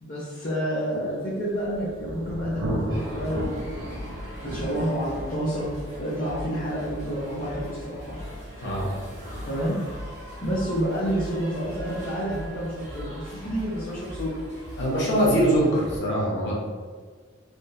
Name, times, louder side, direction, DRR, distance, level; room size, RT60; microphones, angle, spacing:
voice 1, 0.0-5.7 6.0-8.2 9.5-9.8 10.4-14.4, equal, 45° left, -9 dB, 0.6 m, -29 dB
Thunder, 1.3-12.8, right 1 dB, 65° right, 0.5 m, -37 dB
sound 1, 2.9-16.0, equal, 35° right, 1.4 m, -40 dB
voice 2, 14.8-16.5, right 1 dB, 60° left, -5 dB, 0.9 m, -22 dB
3.5 x 2.4 x 2.6 m, 1.5 s
head